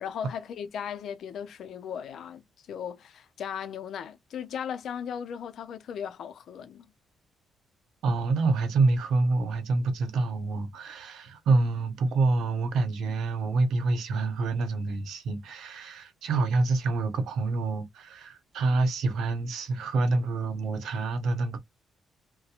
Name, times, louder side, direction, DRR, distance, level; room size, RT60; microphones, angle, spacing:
voice 1, 0.0-2.4 2.7-6.9, left 8 dB, 70° left, 0.5 m, -37 dB
voice 2, 8.0-21.6, right 3 dB, 75° right, 0.8 m, -27 dB
2.8 x 2.1 x 2.4 m
cardioid pair, 90°, 0 cm